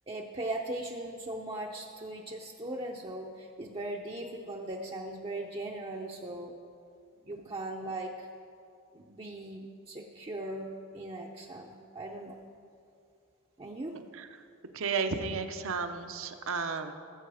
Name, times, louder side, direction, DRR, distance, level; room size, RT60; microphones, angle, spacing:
voice 1, 0.1-6.6 7.2-8.3 8.9-12.4 13.6-14.0, right 1 dB, 25° right, -1 dB, 0.6 m, -39 dB
voice 2, 13.9-14.3 14.7-16.9, right 5 dB, 60° right, 7 dB, 0.8 m, -33 dB
19.5 x 7.7 x 4.9 m, 2.4 s
head